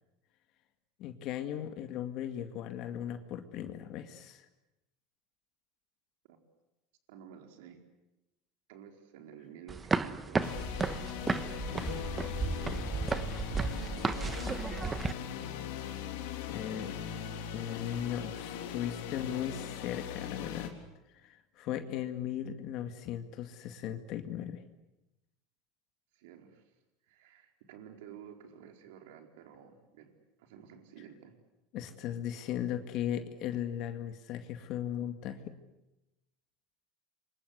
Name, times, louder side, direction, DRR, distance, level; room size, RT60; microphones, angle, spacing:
voice 1, 1.0-4.5 16.5-17.0 17.5-20.7 21.1-24.6 31.7-35.5, left 10 dB, 50° left, 8 dB, 2.1 m, -37 dB
voice 2, 7.1-7.8 8.7-10.7 11.6-13.3 13.8-15.2 26.1-26.7 27.0-31.4, right 8 dB, 80° right, 5 dB, 4.5 m, -53 dB
sound 1, 9.7-15.1, right 4 dB, 15° right, 1.3 m, -33 dB
sound 2, 10.4-20.7, left 9 dB, 85° left, 3.9 m, -40 dB
28.5 x 25.0 x 8.3 m, 0.97 s
supercardioid pair, 135°, 0 cm